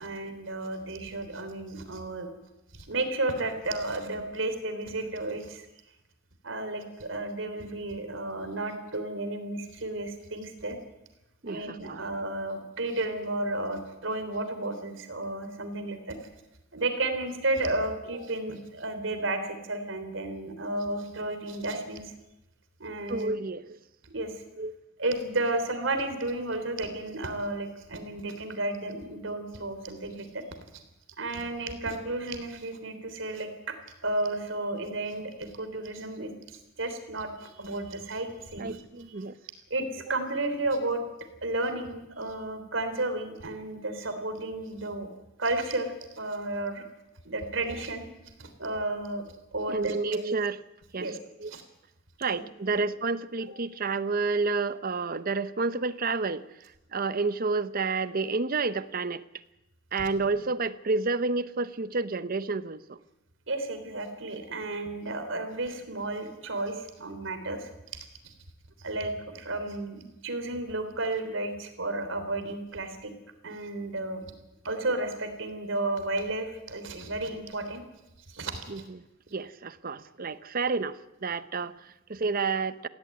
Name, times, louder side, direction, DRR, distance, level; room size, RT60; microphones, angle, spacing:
voice 1, 0.0-2.3 2.7-5.6 6.4-10.8 11.5-16.2 16.7-22.1 22.8-23.3 24.0-24.4 25.0-30.4 30.7-30.8 31.2-33.8 34.0-38.8 39.7-41.0 41.4-45.1 45.4-46.8 47.3-48.0 48.4-49.2 49.5-50.2 51.0-51.2 51.5-51.6 52.3-52.4 63.5-67.7 68.2-68.3 68.8-73.1 73.4-74.3 74.6-77.8 78.3-78.8, right 2 dB, 85° right, 8 dB, 3.5 m, -32 dB
voice 2, 11.4-12.0 23.1-23.8 24.6-24.8 38.6-39.4 49.7-50.6 50.9-51.5 52.2-59.2 59.9-63.0 78.7-79.0 79.3-82.9, right 4 dB, 50° right, 14 dB, 0.8 m, -30 dB
17.5 x 16.0 x 9.5 m, 0.94 s
head